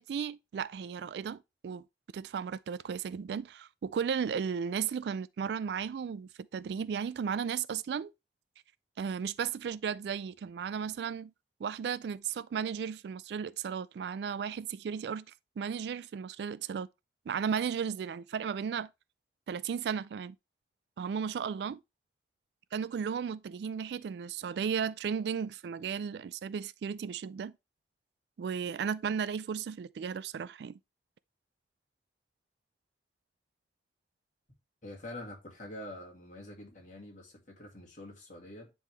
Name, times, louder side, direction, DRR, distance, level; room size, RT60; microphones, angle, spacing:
voice 1, 0.0-1.8 2.1-8.1 9.0-11.3 11.6-15.3 15.6-16.9 17.3-18.9 19.5-20.4 21.0-21.8 22.7-27.5 28.4-30.8, right 7 dB, 65° right, 0.3 m, -35 dB
voice 2, 34.8-38.7, left 1 dB, 45° left, 2.2 m, -46 dB
9.5 x 3.6 x 3.3 m
head